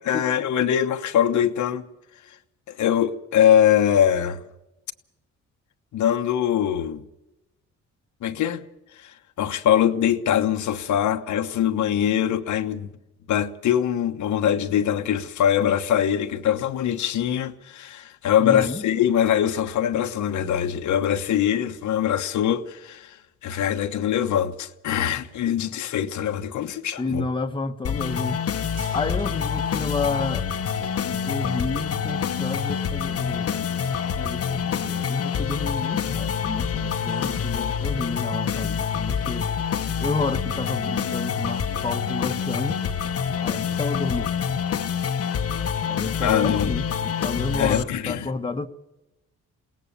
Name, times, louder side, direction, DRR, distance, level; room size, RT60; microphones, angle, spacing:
voice 1, 0.1-1.9 2.7-4.4 5.9-7.1 8.2-8.6 9.0-12.9 13.3-27.2 46.2-46.7 47.6-48.3, left 9 dB, 75° left, 1.2 m, -23 dB
voice 2, 18.4-18.8 27.0-30.5 30.9-39.5 40.0-42.8 43.4-44.9 45.9-48.7, left 3 dB, 15° left, 1.2 m, -31 dB
sound 1, 27.8-47.8, left 7 dB, 50° left, 1.1 m, -27 dB
sound 2, 28.0-46.5, right 4 dB, 80° right, 3.3 m, -46 dB
21.5 x 18.0 x 6.9 m
cardioid pair, 90°, 30 cm